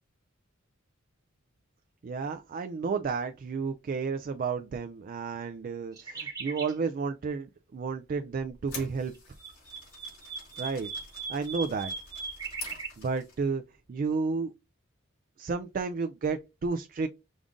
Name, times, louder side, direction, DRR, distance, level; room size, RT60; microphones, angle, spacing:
voice 1, 2.0-9.1 10.6-10.9 11.3-11.9 13.0-13.6 13.9-14.5 15.4-17.1, right 4 dB, 40° right, 0.3 m, -32 dB
sound 1, 6.0-6.8 9.1-12.9, right 5 dB, 20° right, 1.0 m, -39 dB
sound 2, 8.3-13.5, left 4 dB, 85° left, 2.7 m, -47 dB
5.1 x 2.5 x 3.5 m
head